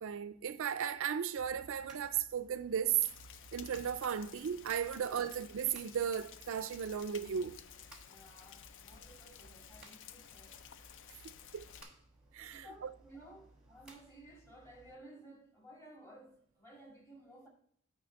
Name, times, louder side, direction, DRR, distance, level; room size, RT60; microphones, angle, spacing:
voice 1, 0.0-3.0 3.5-7.6 11.5-11.7 12.3-12.9, right 8 dB, 65° right, 0.4 m, -35 dB
sound 1, 1.4-14.9, right 2 dB, 5° right, 1.1 m, -62 dB
Rain, 3.0-11.8, left 8 dB, 60° left, 0.4 m, -54 dB
voice 2, 8.0-10.6 12.4-17.5, right 1 dB, 15° left, 2.0 m, -56 dB
9.3 x 3.2 x 6.3 m
head